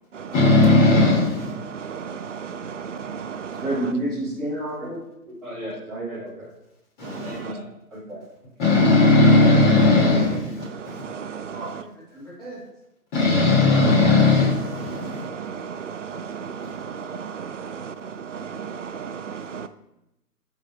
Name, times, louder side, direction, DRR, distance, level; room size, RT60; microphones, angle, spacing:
voice 1, 0.3-1.5 7.0-7.4 8.6-11.0 13.1-15.2, left 2 dB, 30° left, 3.2 m, -17 dB
voice 2, 1.6-3.6 7.1-7.5 10.8-11.7 14.9-19.7, right 6 dB, 50° right, 0.6 m, -35 dB
voice 3, 3.6-5.0 5.3-6.5 7.2-7.6 7.9-8.2 11.5-11.7 12.1-12.6, right 1 dB, ahead, 2.9 m, -30 dB
14.0 x 4.9 x 2.7 m
figure-of-eight pair, 145°, 47 cm